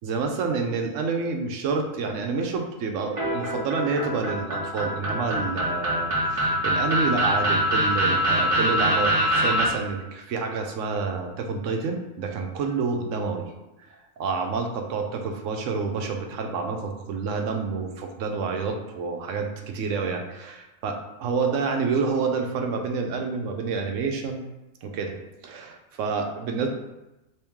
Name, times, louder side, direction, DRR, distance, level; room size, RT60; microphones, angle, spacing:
voice 1, 0.0-13.4 14.2-24.4 24.8-25.1 25.4-26.7, right 4 dB, 75° right, 4 dB, 0.9 m, -28 dB
sound 1, 3.2-9.7, right 1 dB, 35° right, 0.6 m, -24 dB
3.1 x 3.0 x 3.5 m, 0.98 s
omnidirectional pair, 1.4 m